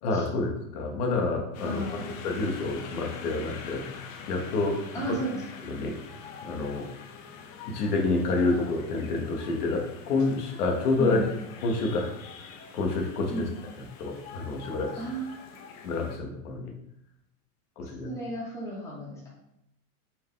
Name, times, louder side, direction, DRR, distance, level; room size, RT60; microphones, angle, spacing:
voice 1, 0.0-3.9 4.3-5.2 5.6-6.0 6.4-6.9 7.6-11.3 11.6-13.5 14.0-15.0 15.8-16.7 17.8-18.1, left 3 dB, 80° left, 1 dB, 1.1 m, -28 dB
sound 1, 1.5-16.2, left 5 dB, 60° left, 0.7 m, -45 dB
voice 2, 1.6-2.1 4.9-5.4 11.0-11.2 13.3-13.4 15.0-15.3 17.8-19.3, right 2 dB, 5° left, -4 dB, 0.8 m, -34 dB
4.5 x 2.2 x 3.7 m, 0.79 s
supercardioid pair, 140°, 45 cm